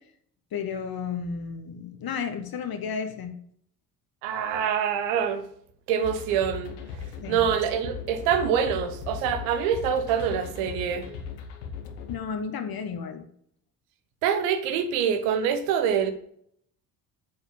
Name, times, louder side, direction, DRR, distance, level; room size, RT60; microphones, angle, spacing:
voice 1, 0.5-3.4 7.2-7.4 12.1-13.3, left 6 dB, 50° left, 1.4 m, -32 dB
voice 2, 4.2-5.5 5.9-6.7 7.3-11.1 14.2-16.1, right 8 dB, 70° right, 1.4 m, -25 dB
sound 1, 6.0-12.2, left 6 dB, 80° left, 1.5 m, -38 dB
7.8 x 6.6 x 7.6 m
hypercardioid pair, 45°, 47 cm